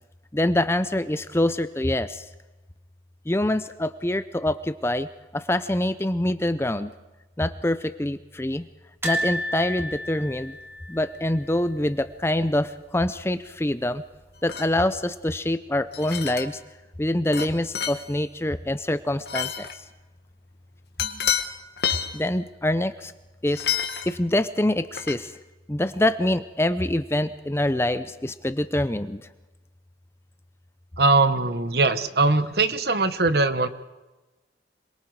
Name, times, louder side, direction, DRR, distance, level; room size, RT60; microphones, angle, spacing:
voice 1, 0.3-2.2 3.3-5.1 5.3-6.9 7.4-8.7 9.0-10.6 10.9-14.0 14.4-16.6 17.0-19.7 22.1-23.1 23.4-23.7 24.1-25.3 25.7-29.2, left 1 dB, 15° left, 12 dB, 0.6 m, -25 dB
sound 1, 9.0-12.1 12.3-12.5 12.8-12.9 14.1-14.7 15.2-15.3, equal, 15° right, 3.8 m, -32 dB
sound 2, 14.5-14.8 15.9-16.5 17.3-17.5 17.7-18.1 19.3-19.8 21.0-21.5 21.8-22.1 23.5-24.1 24.9-25.2, left 8 dB, 60° left, 1.7 m, -28 dB
voice 2, 31.0-33.7, right 3 dB, 60° right, 11 dB, 1.2 m, -21 dB
27.0 x 22.5 x 4.8 m, 1.1 s
head